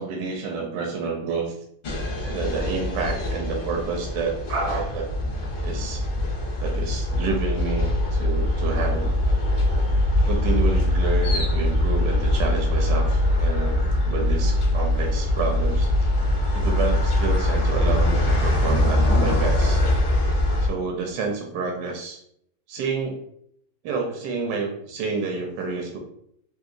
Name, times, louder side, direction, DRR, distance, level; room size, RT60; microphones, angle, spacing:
voice 1, 0.0-1.6 2.2-5.1 5.6-6.1 6.6-9.2 10.2-15.9 16.5-19.8 20.6-22.2 22.7-23.2 23.8-26.0, right 4 dB, 75° right, 1 dB, 1.2 m, -29 dB
sound 1, 1.8-20.7, left 1 dB, 60° left, 0.5 m, -22 dB
3.2 x 2.7 x 2.5 m, 0.71 s
omnidirectional pair, 1.8 m